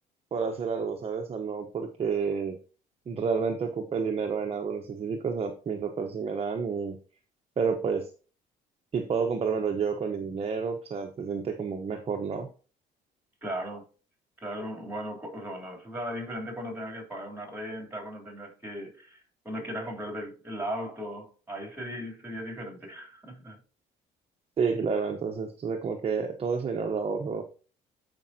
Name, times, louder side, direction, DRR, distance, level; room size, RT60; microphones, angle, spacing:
voice 1, 0.3-2.6 3.1-7.0 7.6-8.1 8.9-12.5 24.6-27.4, right 5 dB, 35° right, 1.0 m, -30 dB
voice 2, 13.4-13.8 14.4-19.2 19.4-23.6, equal, 10° right, 3.4 m, -37 dB
13.5 x 5.3 x 2.8 m
cardioid pair, 110°, 17 cm